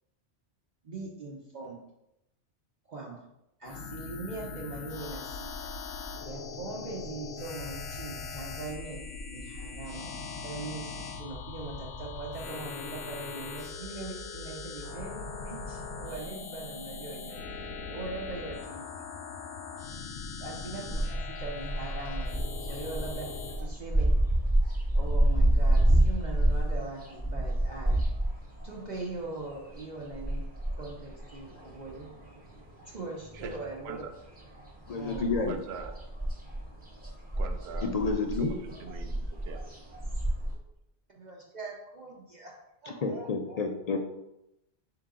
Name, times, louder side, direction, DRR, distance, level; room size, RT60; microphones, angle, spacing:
voice 1, 0.8-1.8 2.9-3.2 3.6-5.7 6.2-9.0 9.3-10.1 10.4-10.9 11.2-19.1 20.4-22.4 22.7-24.1 24.9-28.0 28.6-30.4 30.7-32.1 32.8-34.0 34.9-35.4 41.2-42.5 42.8-43.6, right 3 dB, 50° right, -3 dB, 0.7 m, -41 dB
sound 1, 3.6-23.6, left 4 dB, 85° left, 0.9 m, -40 dB
sound 2, 20.9-32.5 32.8-34.1 34.4-40.5, right 1 dB, 10° right, 0.8 m, -28 dB
voice 2, 31.3-32.9 33.3-34.1 35.5-36.0 37.4-37.9 38.4-39.8, right 5 dB, 80° right, 6 dB, 0.8 m, -44 dB
voice 3, 34.9-35.6 37.8-38.5 43.0-44.0, left 4 dB, 55° left, 3 dB, 0.5 m, -29 dB
4.6 x 2.9 x 3.7 m, 0.86 s
omnidirectional pair, 1.1 m